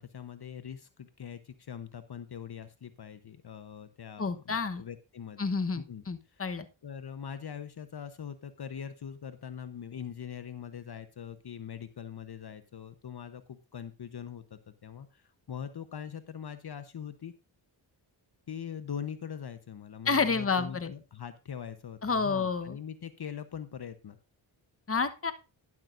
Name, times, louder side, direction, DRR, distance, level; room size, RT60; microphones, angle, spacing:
voice 1, 0.0-5.4 5.8-6.5 6.8-17.3 18.5-24.2, left 8 dB, 55° left, 11 dB, 1.0 m, -42 dB
voice 2, 4.2-4.8 5.4-6.7 20.0-20.9 22.0-22.8 24.9-25.3, left 4 dB, 30° left, 10 dB, 1.1 m, -29 dB
12.0 x 11.0 x 2.6 m, 0.29 s
cardioid pair, 50°, 47 cm